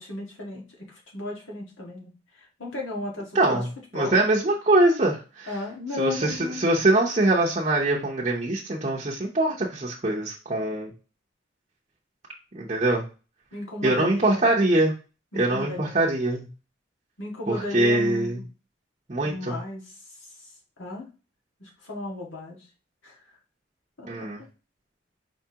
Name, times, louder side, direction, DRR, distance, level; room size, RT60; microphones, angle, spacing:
voice 1, 0.0-3.6 3.9-4.2 5.5-6.6 13.5-14.5 15.3-16.0 17.2-18.3 19.2-20.5 20.8-21.0 21.6-22.7 23.0-23.4 24.0-24.3, left 2 dB, 90° left, -2 dB, 1.7 m, -35 dB
voice 2, 3.3-3.7 3.9-5.5 6.0-10.9 12.5-13.1 13.8-14.9 15.3-16.5 17.5-18.4 19.1-19.6 24.1-24.4, right 2 dB, 35° right, -4 dB, 0.7 m, -23 dB
5.2 x 3.5 x 2.9 m, 0.34 s
head